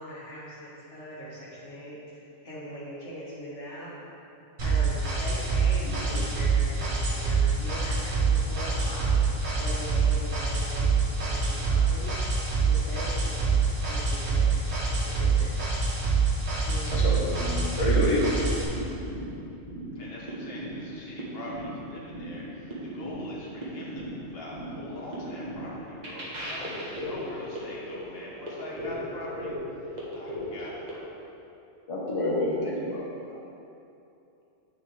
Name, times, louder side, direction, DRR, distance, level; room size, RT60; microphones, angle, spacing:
voice 1, 0.0-3.9 4.6-9.2 9.6-10.9 11.2-12.2 12.6-14.5 14.8-15.5 16.7-16.9, equal, 80° left, -6 dB, 2.0 m, -41 dB
sound 1, 4.6-18.6, right 4 dB, 65° right, 1.9 m, -26 dB
voice 2, 5.8-6.2 16.9-18.2 31.9-33.4, left 2 dB, 30° left, -5 dB, 1.2 m, -29 dB
sound 2, 18.8-30.9, equal, 40° right, 1.6 m, -38 dB
voice 3, 19.9-31.1, left 1 dB, 55° left, -5 dB, 1.4 m, -42 dB
9.0 x 6.7 x 3.4 m, 2.8 s
omnidirectional pair, 1.2 m